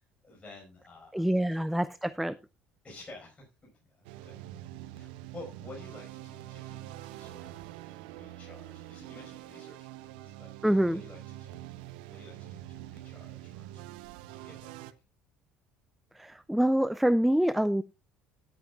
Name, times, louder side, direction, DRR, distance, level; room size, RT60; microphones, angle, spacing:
voice 1, 0.0-2.0 2.8-3.4 3.9-4.6 4.9-7.6 7.8-11.7 12.1-13.9 14.3-14.9, left 2 dB, 25° left, -2 dB, 4.9 m, -51 dB
voice 2, 1.1-2.3 10.6-11.0 16.2-17.8, right 1 dB, ahead, 17 dB, 0.4 m, -26 dB
sound 1, 4.0-14.9, right 14 dB, 75° right, 0.7 m, -45 dB
17.5 x 8.1 x 2.4 m, 0.27 s
hypercardioid pair, 65°, 5 cm